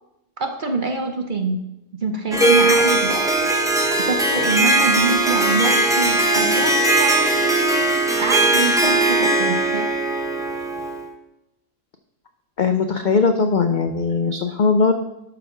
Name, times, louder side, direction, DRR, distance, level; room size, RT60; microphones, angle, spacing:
voice 1, 0.4-1.6 2.0-3.2 4.0-9.9, right 3 dB, 45° right, 5 dB, 0.8 m, -25 dB
Harp, 2.3-11.1, right 2 dB, 5° right, 0.6 m, -19 dB
voice 2, 12.6-14.9, left 4 dB, 65° left, 7 dB, 0.5 m, -19 dB
12.0 x 4.1 x 5.7 m, 0.89 s
omnidirectional pair, 1.4 m